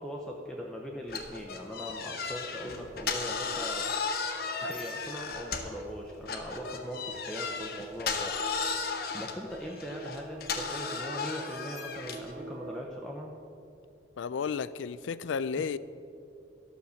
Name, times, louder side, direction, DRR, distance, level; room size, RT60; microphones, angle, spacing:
voice 1, 0.0-3.9 4.6-8.3 9.1-13.3, equal, 5° left, -2 dB, 0.7 m, -40 dB
sound 1, 1.1-5.8 6.3-12.3, left 5 dB, 55° left, 0.9 m, -35 dB
sound 2, 2.9-12.8, right 3 dB, 35° right, 0.6 m, -49 dB
voice 2, 14.2-15.8, left 6 dB, 85° left, 16 dB, 0.4 m, -32 dB
12.0 x 6.5 x 7.0 m, 2.5 s
head